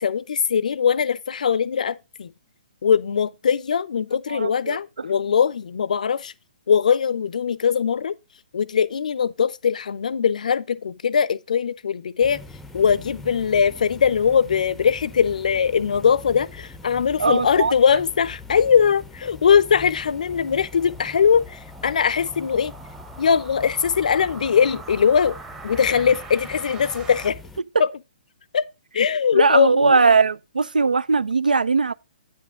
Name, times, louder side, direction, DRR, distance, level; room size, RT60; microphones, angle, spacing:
voice 1, 0.0-2.3 2.8-6.3 6.7-8.1 8.5-12.4 12.7-22.7 23.2-25.4 25.6-27.4 27.8-27.9 28.5-28.6 28.9-30.0, left 7 dB, 60° left, 0.5 m, -21 dB
voice 2, 4.3-4.8 17.2-17.7 29.3-31.9, right 4 dB, 75° right, 0.5 m, -19 dB
sound 1, 12.2-27.6, left 3 dB, 5° left, 0.6 m, -42 dB
sound 2, 18.8-27.3, right 4 dB, 15° right, 1.0 m, -43 dB
8.9 x 5.2 x 4.9 m
figure-of-eight pair, 130°, 5 cm